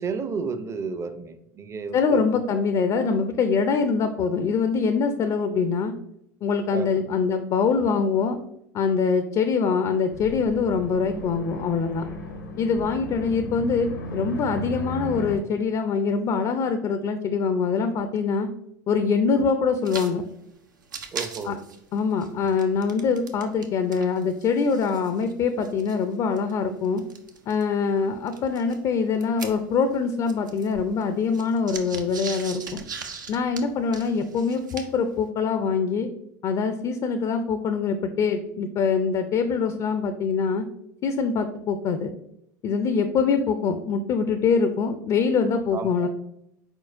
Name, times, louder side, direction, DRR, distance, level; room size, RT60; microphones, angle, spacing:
voice 1, 0.0-2.4 6.7-6.9 21.1-21.6 45.7-46.1, right 5 dB, 30° right, 10 dB, 0.5 m, -32 dB
voice 2, 1.9-5.9 6.4-8.4 8.7-12.1 12.6-18.5 18.9-20.2 21.4-21.6 21.9-27.0 27.5-32.8 33.3-36.1 36.4-40.7 41.0-42.1 42.6-46.1, left 5 dB, 40° left, 9 dB, 0.4 m, -24 dB
sound 1, 10.1-15.4, equal, 85° left, 0.8 m, -35 dB
sound 2, 19.8-20.1 20.4-20.5 20.8-23.7 23.9-27.6 28.3-30.0 30.2-35.1, right 5 dB, 90° right, 0.5 m, -39 dB
4.4 x 4.1 x 2.5 m, 0.79 s
hypercardioid pair, 80°, 10 cm